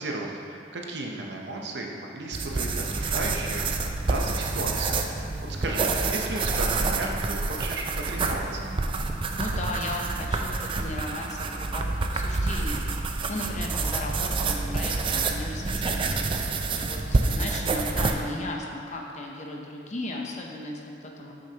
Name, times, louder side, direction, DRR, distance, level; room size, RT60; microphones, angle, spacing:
voice 1, 0.0-5.0 5.6-8.6, right 2 dB, 65° right, 0 dB, 0.7 m, -34 dB
sound 1, 2.3-18.1, right 3 dB, 30° right, 0.3 m, -28 dB
voice 2, 5.2-5.6 9.4-21.3, left 1 dB, 40° left, 0 dB, 0.7 m, -36 dB
8.3 x 6.4 x 2.9 m, 2.5 s
head